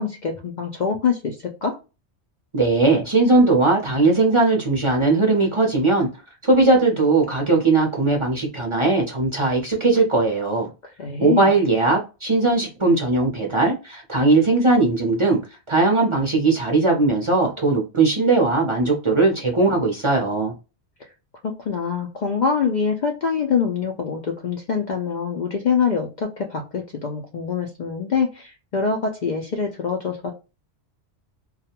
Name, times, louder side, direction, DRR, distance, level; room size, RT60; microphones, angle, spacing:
voice 1, 0.0-1.4 1.6-1.8 11.0-11.5 21.4-30.3, left 6 dB, 55° left, 0.5 m, -24 dB
voice 2, 2.5-6.1 6.4-10.7 11.2-15.4 15.7-20.5, right 3 dB, 35° right, 0.6 m, -19 dB
2.3 x 2.1 x 2.8 m
omnidirectional pair, 1.1 m